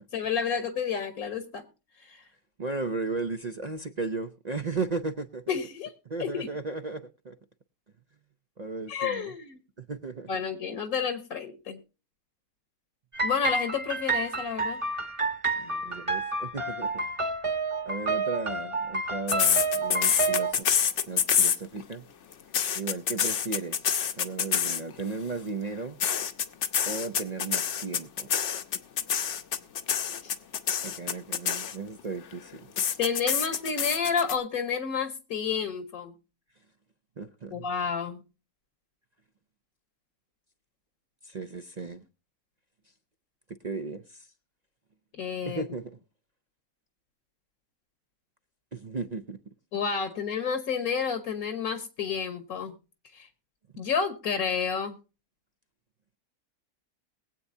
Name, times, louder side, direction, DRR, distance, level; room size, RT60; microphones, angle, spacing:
voice 1, 0.1-1.6 2.0-2.3 5.5-5.9 6.2-6.5 8.9-9.6 10.3-11.8 13.2-14.8 30.2-30.3 33.0-36.1 37.5-38.2 45.2-45.6 49.7-52.8 53.1-53.3 53.8-55.0, left 6 dB, 75° left, 1.7 m, -30 dB
voice 2, 2.6-5.4 6.1-7.4 8.6-9.3 9.8-10.3 15.5-17.1 17.9-20.7 21.1-22.0 22.7-26.0 26.9-28.3 30.8-32.7 37.2-37.7 41.2-42.0 43.6-44.3 45.5-45.9 48.7-49.4, right 4 dB, 50° right, 0.5 m, -35 dB
sound 1, 13.1-20.5, right 3 dB, 25° right, 1.2 m, -29 dB
sound 2, 19.3-21.9 22.3-25.0 26.0-32.0 32.8-34.4, left 8 dB, 55° left, 1.1 m, -26 dB
22.0 x 8.2 x 2.7 m
omnidirectional pair, 1.6 m